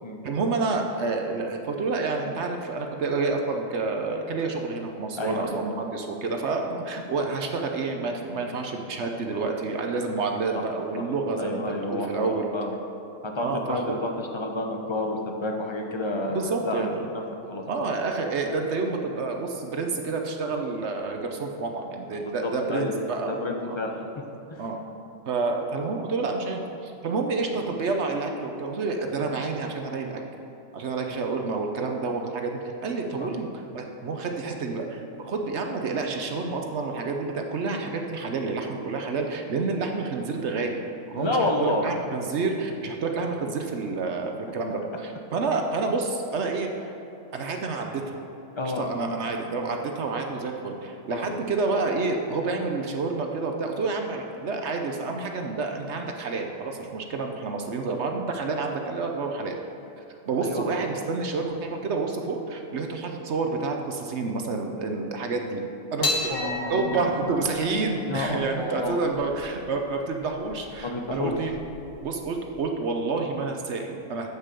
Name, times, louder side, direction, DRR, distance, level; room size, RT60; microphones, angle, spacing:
voice 1, 0.2-12.5 13.4-14.0 16.3-17.1 17.7-23.3 23.7-23.8 24.6-24.8 25.3-30.2 30.7-40.8 41.1-46.9 47.3-48.2 48.6-59.6 60.3-65.6 65.9-71.5 72.0-74.3, right 3 dB, 65° right, 3 dB, 1.0 m, -29 dB
voice 2, 5.2-5.7 11.4-12.8 13.2-17.2 17.5-17.6 22.2-22.9 23.2-23.9 33.1-33.3 41.2-41.8 48.6-48.9 51.1-51.3 60.4-60.6 66.0-67.0 68.0-69.0 70.8-71.4, left 2 dB, 25° left, 2 dB, 0.8 m, -30 dB
sound 1, 66.0-72.6, left 2 dB, 75° left, 1.8 m, -34 dB
7.5 x 6.7 x 6.8 m, 2.9 s
omnidirectional pair, 1.3 m